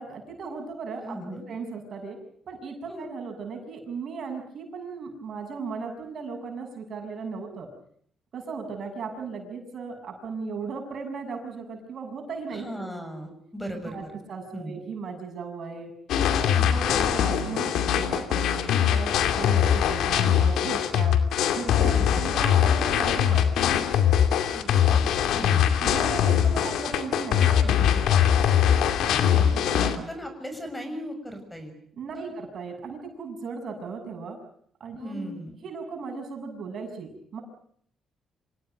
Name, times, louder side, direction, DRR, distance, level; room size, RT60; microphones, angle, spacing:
voice 1, 0.0-1.2 1.5-2.2 2.5-7.7 8.3-12.9 13.9-15.9 16.3-18.5 18.8-21.2 21.5-23.7 25.4-28.3 29.4-30.0 32.0-34.4 34.8-35.3 35.6-37.4, right 4 dB, 60° right, 4 dB, 7.1 m, -36 dB
voice 2, 1.0-1.4 2.9-3.1 12.5-14.0 14.5-14.8 16.4-16.8 21.9-22.4 24.5-25.8 29.0-29.6 29.8-31.7 32.1-32.3 35.0-35.5, equal, 5° left, 7 dB, 6.7 m, -38 dB
sound 1, 16.1-30.0, left 9 dB, 80° left, 2.4 m, -22 dB
26.5 x 18.0 x 9.2 m, 0.64 s
cardioid pair, 90°, 0 cm